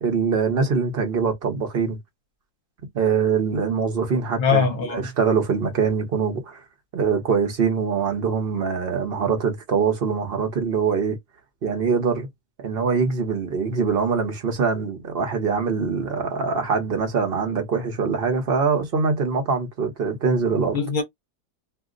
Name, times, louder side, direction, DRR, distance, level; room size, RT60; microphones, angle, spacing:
voice 1, 0.0-2.0 2.9-6.6 6.9-11.2 11.6-12.3 12.6-20.8, right 5 dB, 45° right, 0.9 m, -23 dB
voice 2, 4.4-5.1 20.7-21.0, left 5 dB, 60° left, 1.1 m, -22 dB
2.7 x 2.0 x 3.7 m
omnidirectional pair, 1.6 m